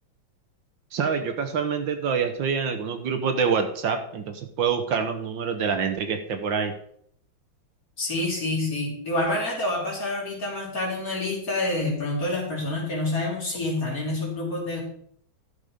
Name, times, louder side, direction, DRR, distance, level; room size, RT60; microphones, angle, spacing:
voice 1, 0.9-6.7, right 6 dB, 70° right, 7 dB, 1.8 m, -26 dB
voice 2, 8.0-14.8, left 2 dB, 45° left, -3 dB, 4.1 m, -27 dB
12.5 x 6.7 x 5.0 m, 0.65 s
omnidirectional pair, 2.2 m